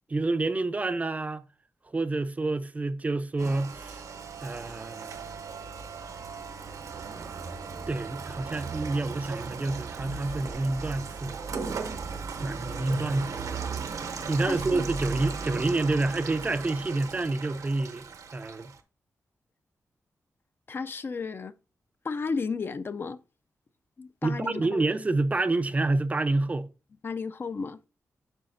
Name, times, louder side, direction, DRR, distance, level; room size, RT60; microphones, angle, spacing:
voice 1, 0.1-1.4 1.9-4.0 4.4-5.3 7.9-11.5 12.4-13.6 14.3-18.0 18.3-18.7 24.2-26.7, right 2 dB, 25° right, 0.5 m, -28 dB
Rain, 3.4-18.8, right 5 dB, 75° right, 0.8 m, -37 dB
voice 2, 14.5-14.9 20.7-21.5 22.0-23.2 24.0-24.8 27.0-27.8, left 4 dB, 40° left, 0.4 m, -33 dB
8.8 x 5.8 x 2.5 m
wide cardioid pair, 130°, 6 cm